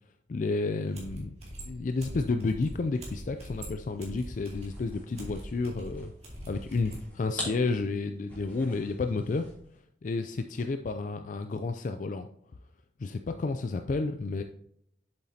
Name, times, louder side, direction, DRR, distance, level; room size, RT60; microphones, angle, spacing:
voice 1, 0.3-1.4 1.6-6.1 6.5-9.5 10.0-12.3 13.0-14.4, left 3 dB, 40° left, 7 dB, 0.4 m, -31 dB
sound 1, 0.9-7.0, equal, 35° right, 2.4 m, -43 dB
Backpack Snap, 4.3-9.7, left 1 dB, 10° left, 3.0 m, -44 dB
7.6 x 7.4 x 2.8 m, 0.72 s
head